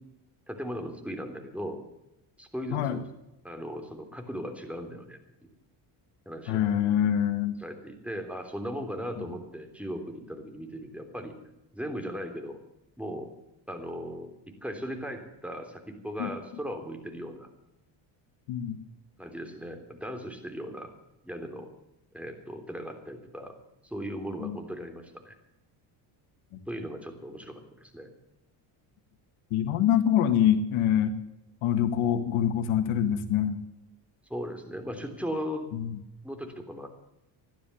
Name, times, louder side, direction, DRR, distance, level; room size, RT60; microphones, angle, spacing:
voice 1, 0.5-1.8 2.4-3.0 3.4-5.2 6.3-6.6 7.6-11.3 11.7-12.6 13.0-13.3 13.7-17.5 19.2-20.9 21.2-21.7 22.1-23.5 23.8-25.4 26.7-28.1 34.3-35.7 36.2-36.9, equal, 5° right, 4 dB, 3.4 m, -37 dB
voice 2, 6.5-7.6 9.2-9.3 16.2-16.3 18.5-18.8 24.4-24.6 26.5-26.6 29.5-31.1 31.6-33.6 35.7-36.0, left 9 dB, 75° left, 9 dB, 1.8 m, -25 dB
15.0 x 12.0 x 6.9 m, 0.88 s
cardioid pair, 95°, 50 cm